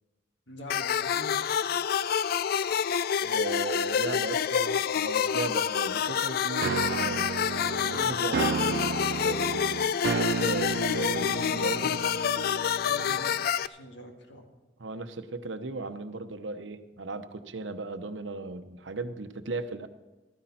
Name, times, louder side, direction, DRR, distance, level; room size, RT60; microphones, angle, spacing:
voice 1, 0.5-1.7 7.8-8.2 12.8-14.5, left 1 dB, 75° left, 3 dB, 2.0 m, -44 dB
sound 1, 0.7-13.7, left 8 dB, 55° left, 0.3 m, -28 dB
voice 2, 3.2-9.6 10.1-12.0 14.8-19.9, right 3 dB, 85° right, 9 dB, 0.9 m, -36 dB
sound 2, 6.6-13.5, right 6 dB, 60° right, 0.3 m, -33 dB
14.5 x 13.5 x 4.3 m, 1.1 s
head